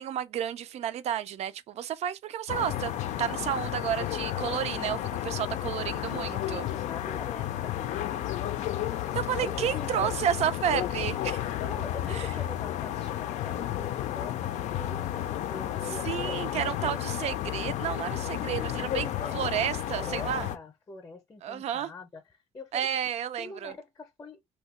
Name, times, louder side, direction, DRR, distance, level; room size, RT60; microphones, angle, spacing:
voice 1, 0.0-6.6 9.1-11.4 12.1-12.4 15.8-20.5 21.4-21.9 22.7-23.7, right 10 dB, 65° right, 0.4 m, -31 dB
sound 1, 2.5-20.6, left 12 dB, 85° left, 0.4 m, -32 dB
voice 2, 6.0-9.1 9.4-9.9 11.6-16.9 18.3-19.3 19.9-23.0 23.4-24.4, left 3 dB, 25° left, 0.6 m, -44 dB
2.8 x 2.3 x 4.1 m
cardioid pair, 125°, 12 cm